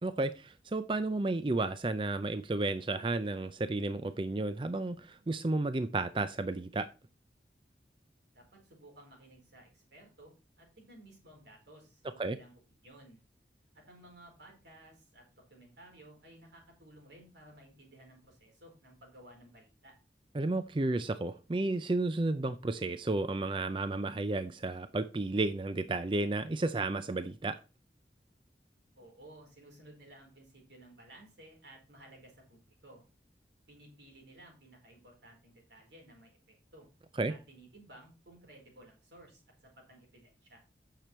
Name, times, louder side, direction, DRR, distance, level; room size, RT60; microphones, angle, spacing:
voice 1, 0.0-6.9 12.2-12.4 20.3-27.6 37.2-37.3, right 2 dB, 30° right, 0.4 m, -32 dB
voice 2, 8.3-13.2 13.7-20.0 28.9-33.0 33.7-36.9 37.3-40.6, right 1 dB, 85° right, 4.6 m, -56 dB
9.1 x 6.8 x 4.5 m
head